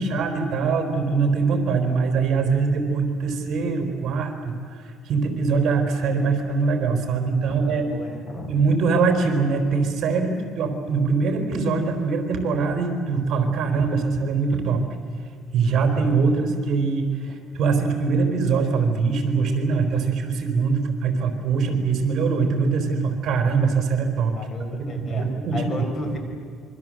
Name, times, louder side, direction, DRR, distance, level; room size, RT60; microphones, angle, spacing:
voice 1, 0.0-7.9 8.5-14.8 15.5-24.3 24.7-25.8, right 4 dB, 50° right, 5 dB, 4.1 m, -23 dB
voice 2, 7.7-8.5 24.3-25.3 25.5-26.2, left 2 dB, 30° left, 4 dB, 4.9 m, -33 dB
27.0 x 23.5 x 7.7 m, 2.2 s
cardioid pair, 140°, 0 cm